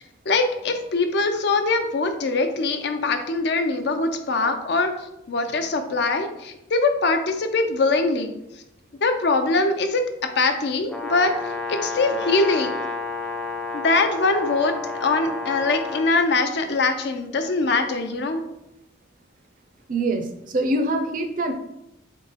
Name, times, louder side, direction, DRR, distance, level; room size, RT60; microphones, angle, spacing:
voice 1, 0.0-8.6 9.0-10.0 10.4-12.7 13.7-18.4, left 3 dB, 60° left, 7 dB, 0.5 m, -23 dB
Brass instrument, 10.9-16.1, left 3 dB, 5° left, 0.5 m, -31 dB
voice 2, 19.9-21.5, right 1 dB, 45° right, 6 dB, 0.5 m, -24 dB
3.7 x 3.6 x 4.0 m, 0.87 s
head